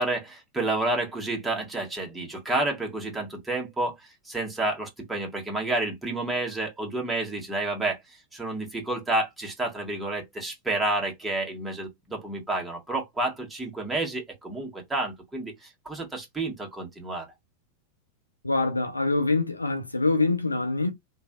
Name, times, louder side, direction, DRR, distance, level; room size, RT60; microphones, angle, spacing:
voice 1, 0.0-17.3, right 2 dB, 10° right, 1.4 m, -30 dB
voice 2, 18.4-20.9, left 3 dB, 80° left, 0.5 m, -25 dB
3.1 x 2.5 x 2.3 m
figure-of-eight pair, 90°, 0 cm